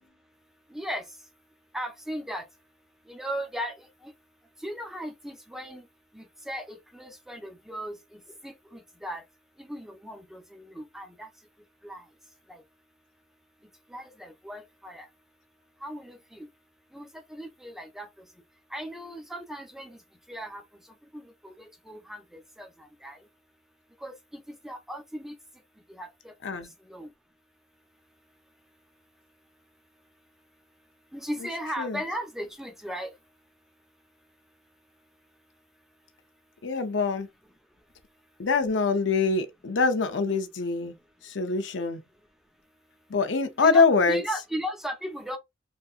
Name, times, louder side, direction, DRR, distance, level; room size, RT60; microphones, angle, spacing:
voice 1, 0.7-1.0 1.7-2.5 3.1-4.1 4.6-5.9 6.1-9.2 9.6-11.3 11.8-12.0 12.5-12.6 13.9-15.1 15.8-16.5 16.9-18.1 18.7-20.0 20.3-20.6 21.1-23.2 24.0-24.1 24.6-25.4 25.9-26.3 26.9-27.1 31.1-33.1 43.6-45.4, equal, ahead, 0.6 m, -37 dB
voice 2, 26.4-26.7 31.8-32.0 36.6-37.3 38.4-41.0 41.2-42.0 43.1-44.2, left 4 dB, 90° left, 0.6 m, -24 dB
3.2 x 2.7 x 2.4 m
head